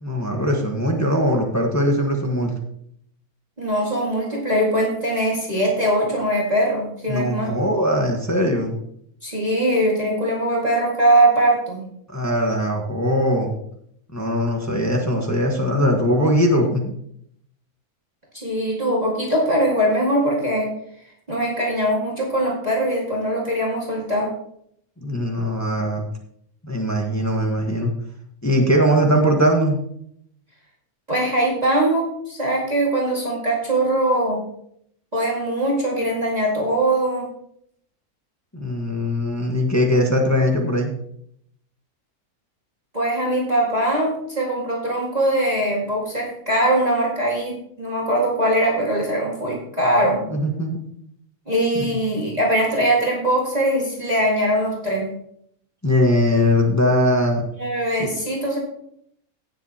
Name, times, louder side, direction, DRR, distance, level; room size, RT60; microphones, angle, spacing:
voice 1, 0.0-2.5 7.1-8.8 12.1-13.5 14.1-16.9 25.0-26.1 26.6-27.9 28.4-29.8 38.5-40.9 50.3-50.8 51.7-51.9 55.8-57.4 58.0-58.1, equal, 10° left, 1 dB, 1.3 m, -20 dB
voice 2, 3.6-7.5 9.2-11.8 18.3-20.7 21.3-24.3 31.1-34.4 35.1-37.3 42.9-50.2 51.5-55.1 57.6-58.6, right 1 dB, 25° right, -4 dB, 2.1 m, -21 dB
17.0 x 7.3 x 2.9 m, 0.71 s
omnidirectional pair, 1.6 m